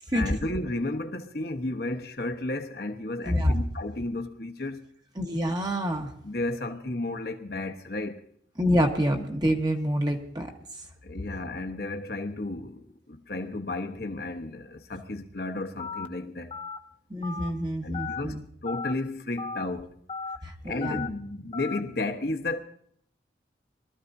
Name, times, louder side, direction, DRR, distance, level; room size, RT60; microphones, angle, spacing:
voice 1, 0.1-4.9 6.2-8.2 11.0-16.5 17.8-19.9 20.6-22.6, left 2 dB, 55° left, 1.2 m, -33 dB
voice 2, 5.2-6.1 8.6-10.5 17.1-18.4 20.4-21.0, equal, 20° right, 1.3 m, -27 dB
Telephone, 15.8-16.1 16.5-16.8 17.2-17.5 17.9-18.2 18.7-18.9 19.4-19.6 20.1-20.4 20.8-21.1 21.5-21.8, left 5 dB, 30° left, 0.8 m, -35 dB
23.0 x 14.0 x 2.7 m
head